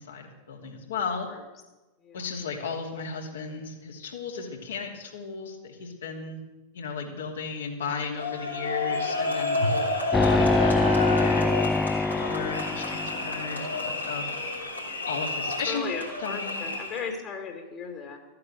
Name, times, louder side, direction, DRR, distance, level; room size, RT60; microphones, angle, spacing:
voice 1, 0.0-1.3 2.1-6.4 6.7-14.3 15.0-15.9 16.2-16.7, left 5 dB, 65° left, 1 dB, 2.7 m, -35 dB
sound 1, 8.1-17.1, left 2 dB, 85° left, 3.4 m, -30 dB
sound 2, 10.1-13.6, left 3 dB, 10° left, 0.4 m, -24 dB
voice 2, 15.7-18.2, left 5 dB, 35° left, 3 dB, 2.3 m, -36 dB
14.0 x 8.8 x 7.9 m, 1.1 s
figure-of-eight pair, 90°, 0 cm